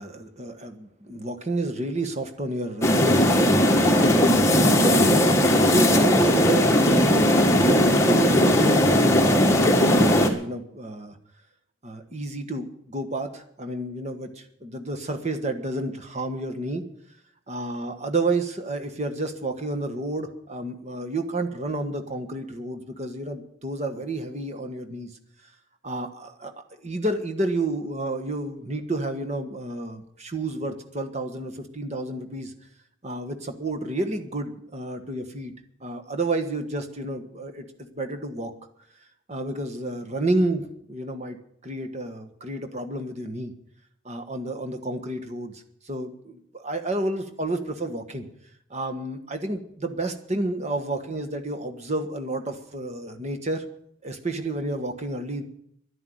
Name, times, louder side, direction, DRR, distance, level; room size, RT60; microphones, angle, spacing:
voice 1, 0.0-3.6 3.9-11.2 11.8-16.8 17.5-25.1 25.8-26.5 26.8-32.5 33.0-35.5 35.8-38.5 39.3-41.4 41.6-43.5 44.0-48.2 48.7-53.6 54.0-55.4, right 2 dB, 35° right, 7 dB, 1.4 m, -30 dB
sound 1, 2.8-10.3, left 1 dB, 15° left, 1.6 m, -18 dB
11.0 x 10.5 x 9.3 m, 0.73 s
head